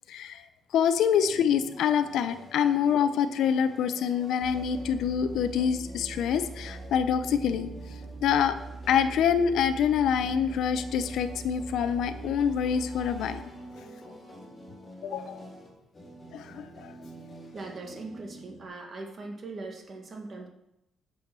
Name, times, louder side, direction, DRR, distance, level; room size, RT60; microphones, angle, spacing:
voice 1, 0.1-0.5 0.7-7.7 8.2-8.6 8.9-13.4 15.0-15.4 16.3-16.9, left 8 dB, 75° left, 9 dB, 0.7 m, -26 dB
sound 1, 1.2-18.6, right 1 dB, 25° left, 4.3 m, -47 dB
sound 2, 4.4-13.5, right 3 dB, 75° right, 2.3 m, -43 dB
voice 2, 17.5-20.5, right 3 dB, 40° right, 3 dB, 2.1 m, -40 dB
8.8 x 7.1 x 6.1 m, 0.84 s
cardioid pair, 115°, 0 cm